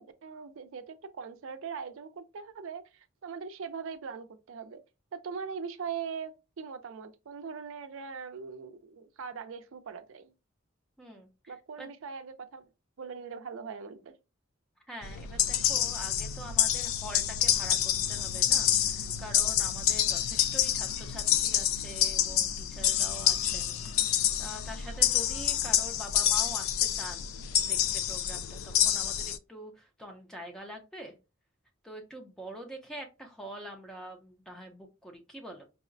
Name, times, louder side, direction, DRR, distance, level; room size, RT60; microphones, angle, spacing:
voice 1, 0.0-4.8 5.1-10.3 11.5-12.6 13.0-14.1, right 6 dB, 70° right, 0.5 m, -41 dB
voice 2, 11.0-11.9 14.9-27.3 27.6-31.1 31.8-35.6, equal, 5° left, 0.5 m, -45 dB
sound 1, 15.0-29.4, left 10 dB, 70° left, 0.3 m, -28 dB
4.7 x 2.1 x 2.5 m
head